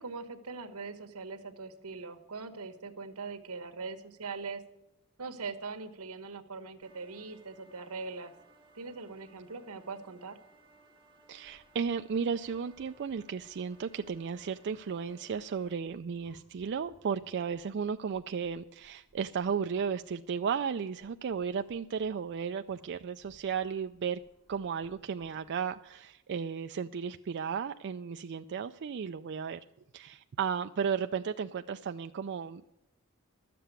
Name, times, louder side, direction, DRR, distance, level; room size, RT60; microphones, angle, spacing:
voice 1, 0.0-4.6 5.2-8.3 8.7-10.4, right 4 dB, 80° right, 7 dB, 1.4 m, -41 dB
sound 1, 6.8-15.7, right 3 dB, 20° right, 1.6 m, -62 dB
sound 2, 11.3-26.0, left 1 dB, 60° left, 6.1 m, -68 dB
voice 2, 11.3-24.2 24.5-29.6 29.9-32.6, right 6 dB, 50° right, 8 dB, 0.4 m, -34 dB
12.5 x 7.7 x 8.1 m, 0.92 s
head